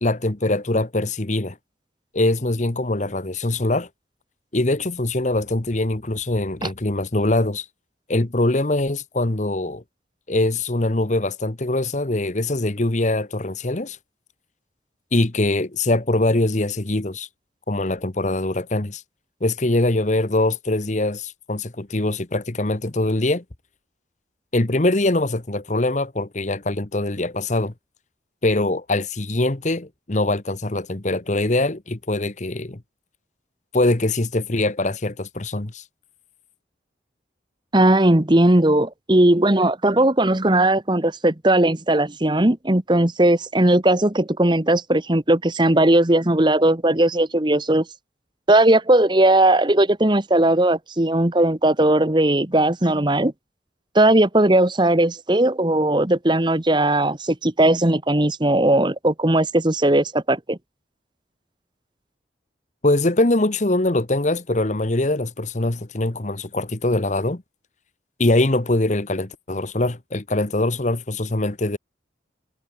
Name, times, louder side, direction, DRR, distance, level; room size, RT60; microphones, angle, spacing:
voice 1, 0.0-1.6 2.1-3.9 4.5-7.7 8.1-9.8 10.3-14.0 15.1-17.3 17.7-19.0 19.4-23.4 24.5-27.7 28.4-32.8 33.7-35.8 62.8-67.4 68.2-71.8, left 2 dB, 40° left, 1.2 m, -22 dB
voice 2, 37.7-47.8 48.5-53.3 53.9-60.6, right 1 dB, 25° right, 1.2 m, -18 dB
head